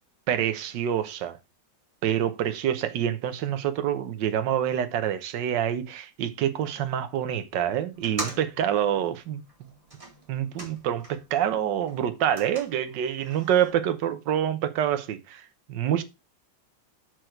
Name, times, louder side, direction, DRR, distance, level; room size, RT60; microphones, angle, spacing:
voice 1, 0.3-1.4 2.0-9.4 10.3-16.0, right 10 dB, 80° right, 1.5 m, -27 dB
sound 1, 7.9-11.4 11.7-13.7, right 2 dB, 20° right, 2.2 m, -42 dB
6.8 x 6.3 x 4.4 m
omnidirectional pair, 1.9 m